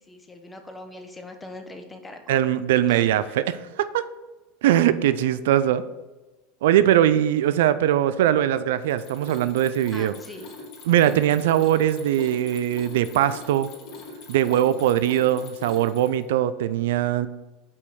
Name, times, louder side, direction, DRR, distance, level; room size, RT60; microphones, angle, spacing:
voice 1, 0.0-2.5 2.7-3.6 9.9-10.5, left 2 dB, 15° left, 6 dB, 1.1 m, -42 dB
voice 2, 2.3-3.4 3.8-4.1 4.6-5.8 6.6-10.1 10.9-13.7 14.3-17.3, right 11 dB, 75° right, 14 dB, 0.3 m, -21 dB
Mechanisms, 8.8-16.3, left 3 dB, 50° left, 2.4 m, -42 dB
5.4 x 5.2 x 6.2 m, 1.1 s
hypercardioid pair, 95°, 0 cm